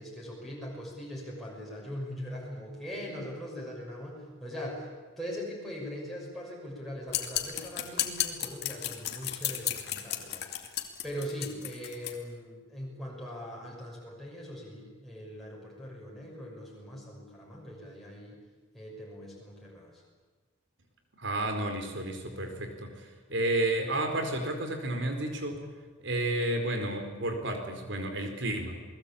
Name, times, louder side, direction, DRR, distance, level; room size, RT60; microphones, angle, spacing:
voice 1, 0.0-4.9 5.2-10.5 11.0-18.4 18.7-20.0, equal, ahead, -4 dB, 6.4 m, -41 dB
sound 1, 7.1-12.1, left 12 dB, 55° left, 2.5 m, -33 dB
voice 2, 21.1-25.6 26.0-28.8, right 1 dB, 60° right, 5 dB, 4.7 m, -31 dB
29.0 x 20.5 x 8.7 m, 1.4 s
head